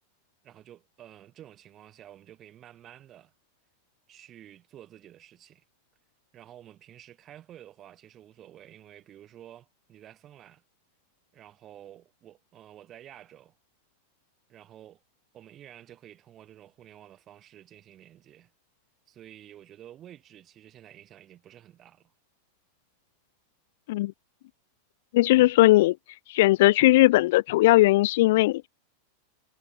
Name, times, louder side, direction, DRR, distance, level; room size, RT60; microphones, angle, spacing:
voice 1, 0.4-3.3 4.1-5.6 6.3-10.6 11.3-13.6 14.5-15.0 15.3-18.5 19.1-22.1, right 11 dB, 30° right, 6.6 m, -51 dB
voice 2, 25.1-26.0 26.3-28.7, left 18 dB, 50° left, 0.6 m, -19 dB
figure-of-eight pair, 90°, 0 cm